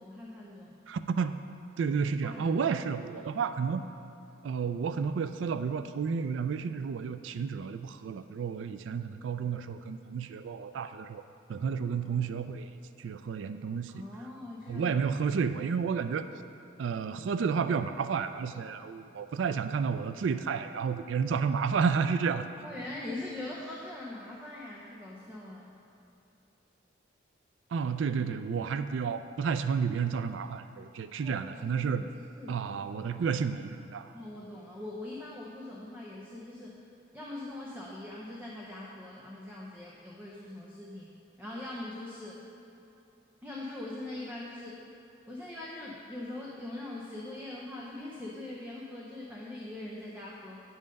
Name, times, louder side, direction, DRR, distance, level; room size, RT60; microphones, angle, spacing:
voice 1, 0.0-0.7 2.2-2.6 11.8-12.1 13.9-15.0 22.6-25.7 31.2-31.4 31.9-32.1 32.3-32.6 33.3-33.4 34.1-36.8 37.1-41.1 41.4-42.4 43.4-44.8 45.3-50.6, left 2 dB, 10° right, -5 dB, 0.7 m, -42 dB
voice 2, 0.9-1.4 1.8-3.8 4.4-11.2 11.5-12.7 13.0-14.0 14.7-16.2 16.8-22.4 27.7-32.0 32.5-34.1, right 6 dB, 80° right, 10 dB, 0.3 m, -31 dB
9.6 x 5.6 x 5.2 m, 2.9 s
head